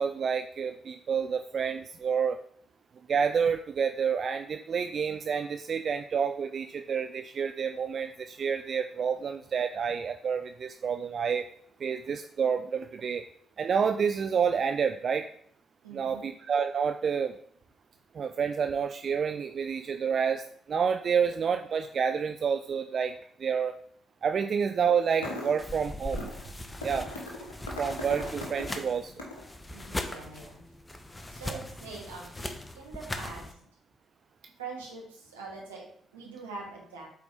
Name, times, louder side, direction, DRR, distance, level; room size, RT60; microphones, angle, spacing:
voice 1, 0.0-2.4 3.1-11.4 11.8-13.2 13.6-15.3 15.9-17.4 18.1-23.8 24.2-26.3 26.8-27.1 27.8-29.1, right 6 dB, 45° right, 7 dB, 0.3 m, -29 dB
voice 2, 15.8-16.3 29.7-30.6 31.3-33.6 34.6-37.1, right 4 dB, 80° right, -3 dB, 1.5 m, -43 dB
sound 1, 25.0-25.7 26.1-26.5 26.8-29.5, left 1 dB, 75° left, 1.2 m, -39 dB
sound 2, 25.6-33.5, left 1 dB, 20° left, 0.8 m, -40 dB
8.1 x 4.2 x 3.4 m, 0.65 s
figure-of-eight pair, 40°, 0 cm